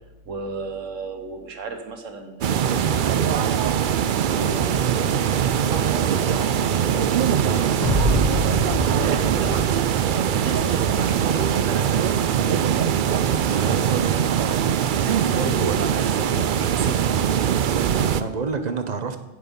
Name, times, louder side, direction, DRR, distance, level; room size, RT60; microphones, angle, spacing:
voice 1, 0.2-3.5 4.0-5.2 5.7-7.1 7.4-8.2 8.9-9.7 10.3-12.7 14.9-17.1, right 4 dB, 90° right, 5 dB, 1.5 m, -33 dB
sound 1, 2.4-18.2, right 8 dB, 60° right, 0.5 m, -22 dB
sound 2, 7.8-11.1, equal, ahead, 2.7 m, -26 dB
voice 2, 13.4-13.8 17.6-19.2, right 4 dB, 40° right, 8 dB, 0.9 m, -29 dB
16.0 x 6.5 x 5.3 m, 1.1 s
omnidirectional pair, 1.3 m